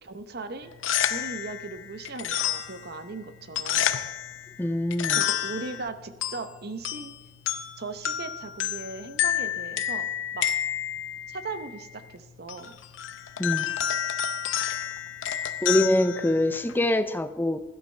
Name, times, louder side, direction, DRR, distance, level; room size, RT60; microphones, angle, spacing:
voice 1, 0.0-0.7 1.1-4.0 5.1-7.1 7.8-10.1 10.3-10.4 11.3-12.7, right 3 dB, 55° right, 10 dB, 0.8 m, -38 dB
sound 1, 0.6-16.9, left 10 dB, 75° left, 0.6 m, -31 dB
voice 2, 4.6-5.2 13.4-13.7 15.6-17.6, left 1 dB, 10° left, 10 dB, 0.5 m, -24 dB
16.0 x 11.5 x 3.3 m, 1.1 s
head